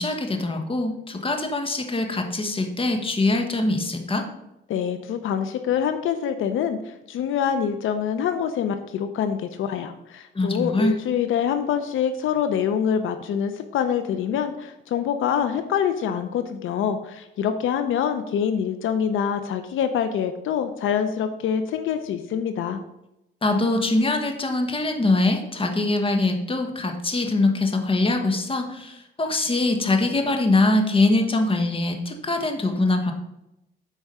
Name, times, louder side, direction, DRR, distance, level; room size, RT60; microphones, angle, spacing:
voice 1, 0.0-4.3 10.3-11.0 23.4-33.1, left 2 dB, 25° left, 4 dB, 1.4 m, -23 dB
voice 2, 4.7-22.8, left 8 dB, 80° left, 9 dB, 0.7 m, -25 dB
8.3 x 4.7 x 5.5 m, 0.87 s
cardioid pair, 105°, 20 cm